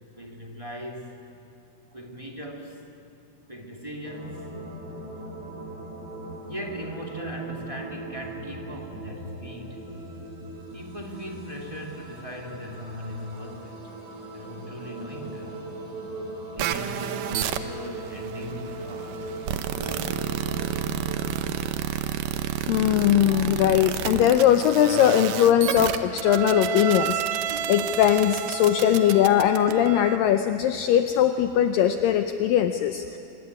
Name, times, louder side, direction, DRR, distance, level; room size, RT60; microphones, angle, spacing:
voice 1, 0.2-1.2 1.9-2.8 3.5-4.5 5.6-5.7 6.4-10.0 10.7-13.8 14.3-15.6 16.5-19.4 19.7-21.0, equal, 15° right, 1 dB, 1.3 m, -39 dB
sound 1, 4.0-21.7, right 2 dB, 30° right, 3.6 m, -39 dB
sound 2, 16.6-30.2, right 10 dB, 70° right, 2.2 m, -30 dB
voice 2, 22.7-33.0, left 10 dB, 75° left, 7 dB, 2.3 m, -20 dB
sound 3, 24.2-25.3 27.3-28.1 29.5-30.0, right 5 dB, 50° right, 2.6 m, -42 dB
25.5 x 21.5 x 9.7 m, 2.7 s
omnidirectional pair, 4.4 m